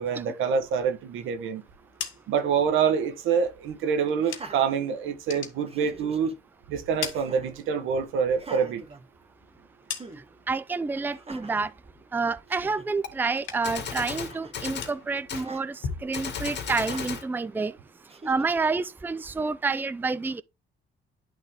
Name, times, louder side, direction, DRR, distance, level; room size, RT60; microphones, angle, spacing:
voice 1, 0.0-1.6 2.3-6.3 6.7-8.8, right 6 dB, 90° right, 1.4 m, -26 dB
sound 1, 1.7-4.8 5.1-6.4 6.7-8.0 8.4-10.5 10.9-11.4 11.7-13.0 13.3-13.9 14.2-17.0, left 7 dB, 80° left, 2.1 m, -41 dB
Laughter, 4.2-5.3 5.7-6.3 7.1-7.6 8.3-9.6 10.0-10.2 11.1-11.7 12.2-12.3 12.5-12.9 14.0-14.6 15.3-15.6 16.8-17.3 18.1-18.7, right 3 dB, 30° right, 1.4 m, -45 dB
voice 2, 10.5-11.7 12.1-17.7 18.3-20.4, right 4 dB, 10° right, 0.4 m, -28 dB
Gunshot gunfire, 13.0-13.1 13.6-14.9 15.3-15.5 16.1-17.3, left 7 dB, 60° left, 2.0 m, -35 dB
11.0 x 3.9 x 3.5 m
cardioid pair, 90°, 20 cm